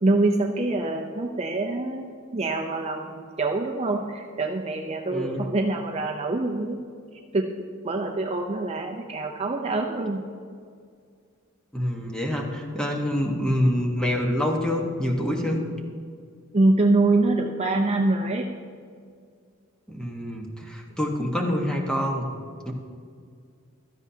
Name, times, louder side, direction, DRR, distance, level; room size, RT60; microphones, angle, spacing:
voice 1, 0.0-2.1 2.3-6.8 7.3-7.5 7.8-10.2 16.5-18.5, right 2 dB, 30° right, 2 dB, 0.6 m, -25 dB
voice 2, 5.1-5.5 11.7-15.6 19.9-22.3 22.6-22.7, equal, 5° left, 0 dB, 1.2 m, -26 dB
16.0 x 13.0 x 2.8 m, 2.2 s
head